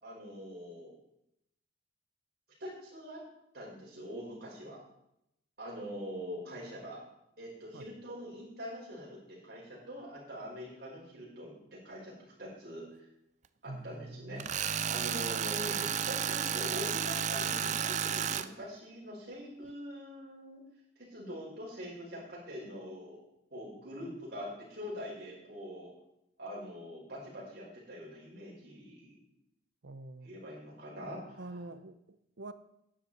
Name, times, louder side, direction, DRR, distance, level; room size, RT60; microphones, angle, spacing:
voice 1, 0.0-1.0 2.6-3.2 3.5-4.8 5.6-7.0 7.4-12.1 12.4-12.8 13.6-20.6 21.0-23.2 23.5-25.9 26.4-29.2 30.2-31.6, equal, 55° right, 5.6 m, -44 dB
voice 2, 13.7-14.5 29.8-30.4 31.4-32.5, right 2 dB, 75° right, 0.8 m, -45 dB
Tools, 14.4-18.5, right 8 dB, 40° right, 0.5 m, -32 dB
12.5 x 9.9 x 4.3 m
head